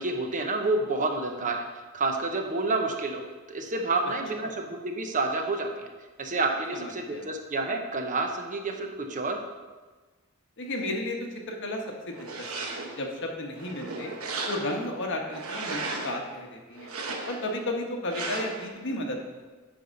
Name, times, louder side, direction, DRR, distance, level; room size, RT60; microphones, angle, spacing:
voice 1, 0.0-1.7 1.9-3.2 3.5-5.9 6.2-9.4, right 3 dB, 40° right, 4 dB, 0.8 m, -29 dB
voice 2, 6.7-7.3 10.6-11.2 11.5-12.5 12.7-14.1 14.5-16.9 17.2-19.3, left 1 dB, 60° left, 2 dB, 1.1 m, -33 dB
sound 1, 12.1-13.0 13.5-14.9 15.3-16.2 16.8-17.6 18.1-18.7, right 3 dB, 75° right, 1.0 m, -35 dB
9.6 x 3.6 x 5.2 m, 1.3 s
head